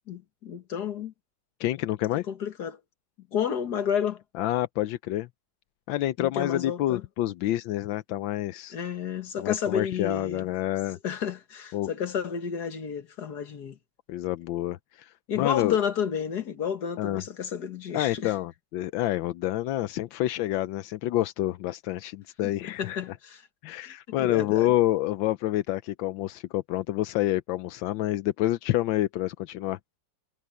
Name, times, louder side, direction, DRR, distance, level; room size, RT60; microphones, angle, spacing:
voice 1, 0.1-1.1 2.3-2.8 3.3-4.2 6.2-7.0 8.7-10.5 11.0-13.8 15.3-18.3 22.8-23.4 23.8-23.9 24.2-24.7, left 8 dB, 60° left, 2.1 m, -31 dB
voice 2, 1.6-2.2 4.3-5.3 5.9-8.8 9.4-11.0 11.7-11.9 14.1-15.8 17.0-17.2 17.9-23.2 23.6-29.8, left 15 dB, 85° left, 1.4 m, -28 dB
omnidirectional pair, 2.0 m